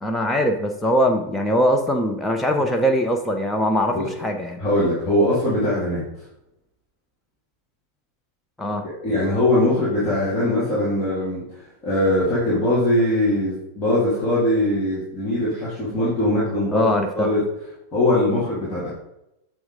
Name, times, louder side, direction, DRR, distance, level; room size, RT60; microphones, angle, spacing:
voice 1, 0.0-4.6 8.6-8.9 16.7-17.3, equal, 5° left, 3 dB, 0.6 m, -21 dB
voice 2, 4.6-6.0 9.0-11.4 11.8-17.4 17.9-18.9, left 1 dB, 30° left, -9 dB, 2.6 m, -21 dB
7.9 x 3.6 x 5.1 m, 0.86 s
figure-of-eight pair, 90°, 0 cm